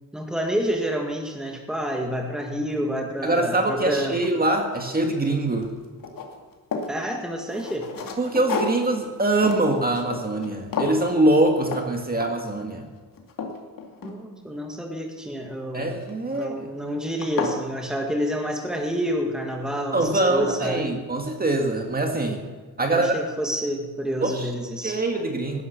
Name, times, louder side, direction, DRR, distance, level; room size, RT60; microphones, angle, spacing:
voice 1, 0.1-4.2 6.9-7.9 14.0-16.0 16.3-20.9 22.8-25.0, equal, ahead, 2 dB, 1.9 m, -28 dB
voice 2, 3.2-5.7 8.2-12.9 15.7-16.7 19.9-22.4 22.8-23.1 24.2-24.5 24.8-25.6, right 2 dB, 25° right, 3 dB, 1.9 m, -23 dB
sound 1, 3.3-3.4 3.9-5.3 5.6-7.0 7.5-10.5 10.7-11.1 11.6-11.9 12.2-12.5 13.0-14.5 16.0-16.4 16.9-17.0 17.2-17.6, left 4 dB, 65° left, 2.4 m, -32 dB
17.5 x 11.0 x 6.9 m, 1.4 s
wide cardioid pair, 130°, 36 cm